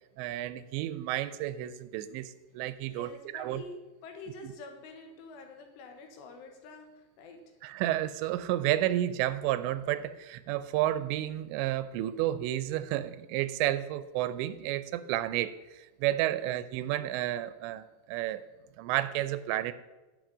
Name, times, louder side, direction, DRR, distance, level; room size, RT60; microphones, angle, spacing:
voice 1, 0.2-3.6 7.6-18.4 18.8-19.7, right 13 dB, 90° right, 14 dB, 2.9 m, -31 dB
voice 2, 2.9-3.8 4.0-7.6 16.3-16.5, left 3 dB, 80° left, 4 dB, 3.4 m, -47 dB
10.5 x 8.0 x 5.2 m, 1.2 s
omnidirectional pair, 5.0 m